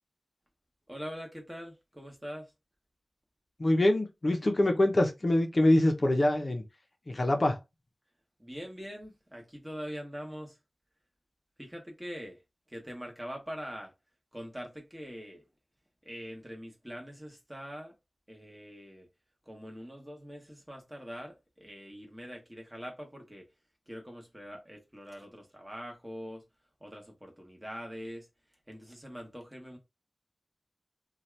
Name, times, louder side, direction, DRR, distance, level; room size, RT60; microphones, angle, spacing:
voice 1, 0.9-2.5 8.4-10.6 11.6-12.4 12.7-13.9 14.3-15.4 16.0-17.9 18.3-19.1 19.4-23.5 23.9-26.5 26.8-28.3 28.7-29.8, equal, 10° right, 1.1 m, -43 dB
voice 2, 3.6-6.6 7.1-7.6, left 1 dB, 45° left, 0.7 m, -25 dB
2.7 x 2.3 x 3.2 m
wide cardioid pair, 85°, 0 cm